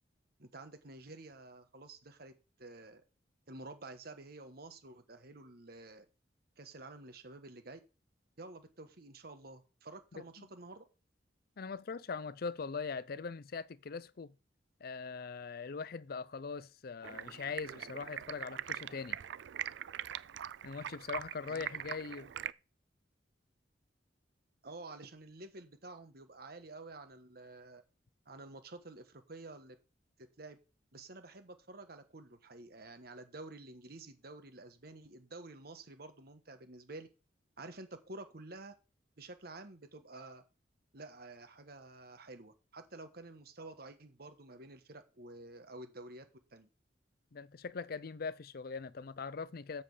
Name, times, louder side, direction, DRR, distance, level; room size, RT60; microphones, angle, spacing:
voice 1, 0.4-2.3 2.6-3.0 3.5-6.1 6.6-7.8 8.4-10.8 21.5-21.7 24.6-27.8 28.3-29.8 30.4-30.6 30.9-37.1 37.6-38.7 39.2-40.4 40.9-46.7, right 2 dB, 60° right, 1.3 m, -50 dB
voice 2, 11.6-14.3 14.8-19.2 20.6-22.3 47.3-49.8, left 5 dB, 55° left, 0.5 m, -41 dB
Stream, 17.0-22.5, right 10 dB, 75° right, 0.4 m, -42 dB
7.6 x 7.0 x 4.9 m
head